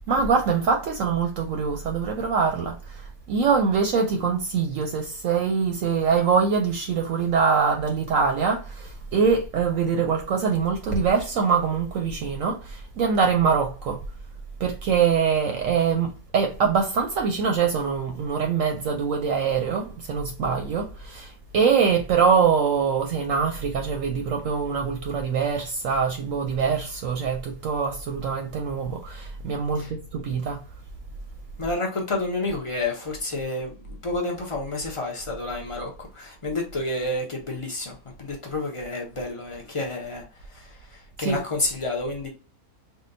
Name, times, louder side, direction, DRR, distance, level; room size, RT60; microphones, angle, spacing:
voice 1, 0.1-3.0 3.3-14.0 14.6-30.6 41.2-41.4, right 6 dB, 70° right, 0.9 m, -24 dB
voice 2, 31.6-42.3, left 2 dB, 55° left, 0.3 m, -30 dB
3.7 x 2.2 x 2.5 m
omnidirectional pair, 1.5 m